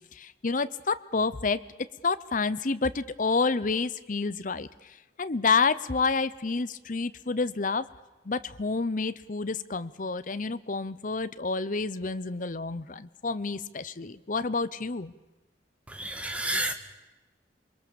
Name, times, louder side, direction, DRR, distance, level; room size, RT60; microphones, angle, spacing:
voice 1, 0.1-1.6 2.0-4.7 5.2-7.9 8.3-15.1, left 4 dB, 45° left, 13 dB, 0.7 m, -29 dB
voice 2, 15.9-16.7, right 1 dB, 5° right, 6 dB, 1.8 m, -30 dB
27.5 x 22.0 x 7.0 m, 1.1 s
head